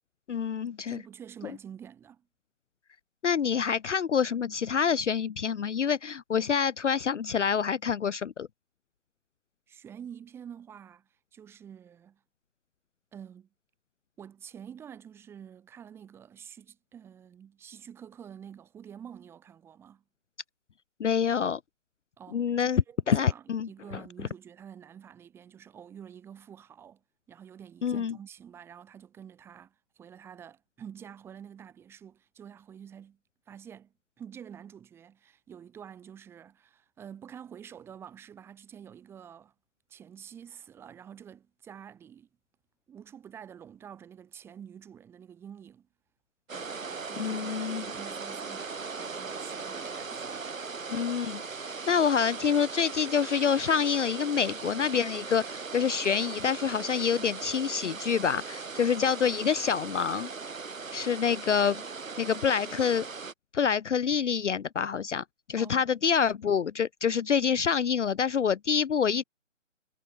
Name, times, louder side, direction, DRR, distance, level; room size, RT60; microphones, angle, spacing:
voice 1, 0.3-1.0 3.2-8.5 21.0-21.6 22.3-23.7 27.8-28.2 47.2-47.8 50.9-60.3 60.9-61.8 62.2-63.1 63.5-65.2 65.5-69.2, left 7 dB, 65° left, 0.5 m, -27 dB
voice 2, 0.9-2.3 9.7-12.2 13.1-13.5 14.2-20.0 22.2-27.0 27.3-33.2 33.5-39.5 39.9-42.3 42.9-45.9 46.5-50.4 65.6-65.8, right 8 dB, 5° right, 3.9 m, -48 dB
sound 1, 46.5-63.3, right 4 dB, 80° right, 1.3 m, -39 dB
figure-of-eight pair, 155°, 39 cm